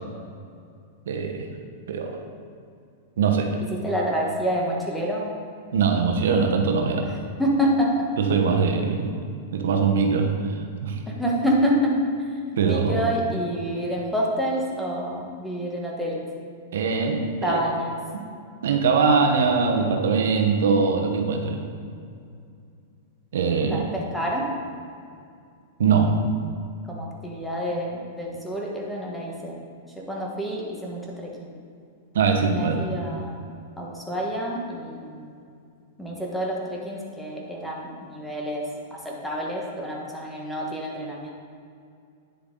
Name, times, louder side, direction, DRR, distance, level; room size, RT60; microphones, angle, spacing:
voice 1, 1.1-1.5 1.9-2.2 3.2-3.5 5.7-7.1 8.2-9.1 9.5-11.0 12.6-13.0 16.7-17.6 18.6-21.6 23.3-23.9 25.8-26.2 32.1-32.8, right 5 dB, 80° right, 3 dB, 1.1 m, -22 dB
voice 2, 3.7-5.4 7.0-8.1 11.1-12.0 12.6-16.3 17.4-17.9 23.7-24.5 26.9-29.6 30.0-31.6 32.5-33.5 33.8-35.4 36.0-38.6 38.9-41.3, equal, 5° left, -3 dB, 1.4 m, -28 dB
9.7 x 6.9 x 3.9 m, 2.4 s
hypercardioid pair, 140°, 0 cm